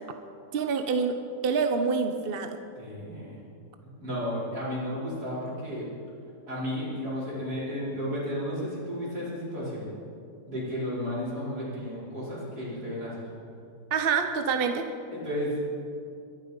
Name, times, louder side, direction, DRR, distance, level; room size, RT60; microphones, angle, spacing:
voice 1, 0.5-2.6 13.9-14.9, right 5 dB, 45° right, 7 dB, 0.9 m, -27 dB
voice 2, 2.8-3.4 4.0-5.9 6.5-9.9 10.5-13.3 15.1-15.8, equal, 70° right, -7 dB, 5.7 m, -33 dB
22.0 x 11.0 x 5.4 m, 2.4 s
omnidirectional pair, 1.7 m